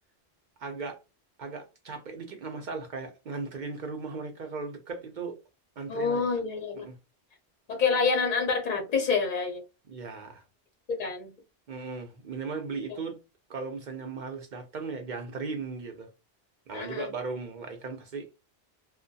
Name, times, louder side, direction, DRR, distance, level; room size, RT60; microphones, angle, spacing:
voice 1, 0.6-1.0 1.4-5.4 5.8-6.2 6.8-7.0 9.9-10.4 11.7-13.2 13.5-16.1 16.7-18.3, right 4 dB, 55° right, 0.6 m, -37 dB
voice 2, 5.9-6.9 7.7-9.6 10.9-11.3 16.7-17.1, left 5 dB, 50° left, 0.7 m, -27 dB
2.6 x 2.1 x 2.6 m
omnidirectional pair, 1.1 m